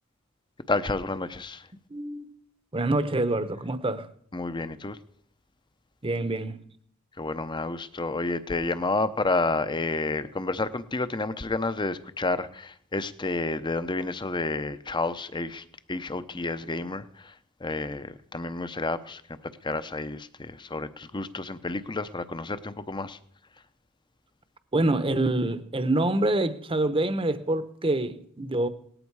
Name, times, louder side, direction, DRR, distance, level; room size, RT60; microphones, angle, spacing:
voice 1, 0.7-1.6 4.3-5.0 7.2-17.0 17.6-19.2 19.6-23.2, left 3 dB, 20° left, 0.7 m, -30 dB
voice 2, 1.9-2.3 2.7-4.1 6.0-6.6 24.7-28.7, right 2 dB, 25° right, 0.9 m, -26 dB
18.5 x 14.0 x 4.8 m
head